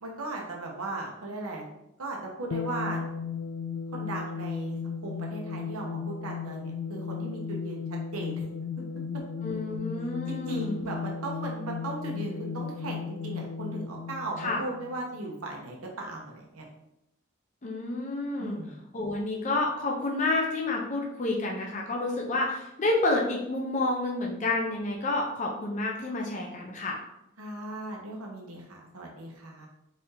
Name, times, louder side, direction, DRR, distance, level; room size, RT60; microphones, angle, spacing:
voice 1, 0.0-1.6 2.0-3.1 3.9-4.8 5.0-8.4 10.3-16.7 18.4-18.8 27.4-29.7, right 2 dB, 90° right, -1 dB, 0.9 m, -37 dB
sound 1, 2.5-15.3, left 6 dB, 75° left, 0.3 m, -36 dB
voice 2, 9.4-10.8 14.4-14.6 17.6-18.6 18.9-27.0, left 2 dB, 35° left, -1 dB, 0.6 m, -29 dB
4.2 x 2.8 x 3.7 m, 0.82 s
head